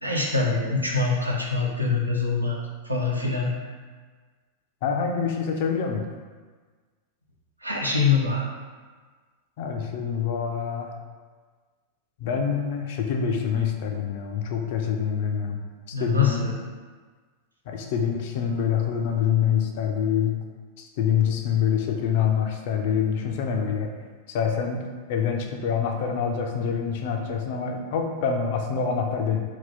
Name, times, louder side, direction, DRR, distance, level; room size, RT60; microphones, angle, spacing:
voice 1, 0.0-2.6 2.8-3.7 7.6-8.5 15.9-16.6, left 4 dB, 85° right, -3 dB, 0.5 m, -24 dB
voice 2, 4.8-6.0 9.6-10.9 12.2-15.6 15.9-16.5 17.7-20.4 20.8-23.9 24.3-24.8 25.1-29.4, left 7 dB, 50° left, 3 dB, 0.4 m, -26 dB
2.7 x 2.3 x 3.5 m, 1.5 s
figure-of-eight pair, 90°, 0 cm